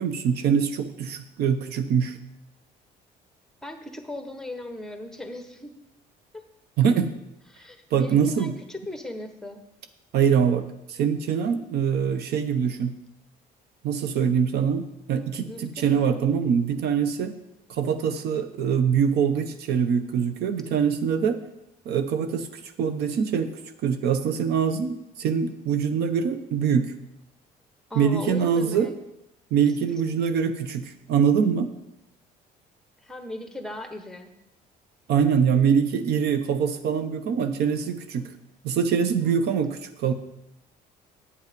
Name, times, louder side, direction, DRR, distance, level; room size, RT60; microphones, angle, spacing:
voice 1, 0.0-2.2 6.8-7.1 7.9-8.5 10.1-12.9 13.8-17.4 17.7-21.4 21.8-23.5 23.8-26.9 28.0-28.9 29.5-31.7 35.1-38.3 38.6-40.1, right 7 dB, 70° right, 10 dB, 0.8 m, -24 dB
voice 2, 3.6-5.8 6.3-6.4 7.5-9.6 15.4-16.2 27.9-29.0 33.0-34.3 39.3-39.6, left 1 dB, 5° left, 6 dB, 1.1 m, -38 dB
8.3 x 8.2 x 5.2 m, 0.85 s
cardioid pair, 110°, 17 cm